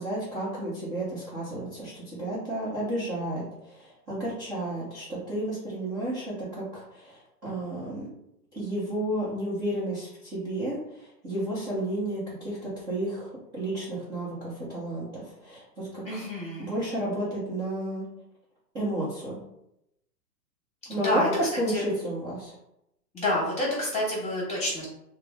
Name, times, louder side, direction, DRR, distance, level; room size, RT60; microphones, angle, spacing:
voice 1, 0.0-8.1 8.5-16.0 16.6-18.1 18.7-19.4 20.9-21.2 21.6-22.5, right 1 dB, 10° right, -11 dB, 0.6 m, -32 dB
voice 2, 16.0-16.7 20.9-21.9 23.1-24.9, left 1 dB, 15° left, -5 dB, 1.2 m, -28 dB
3.2 x 2.0 x 3.3 m, 0.80 s
hypercardioid pair, 145°, 49 cm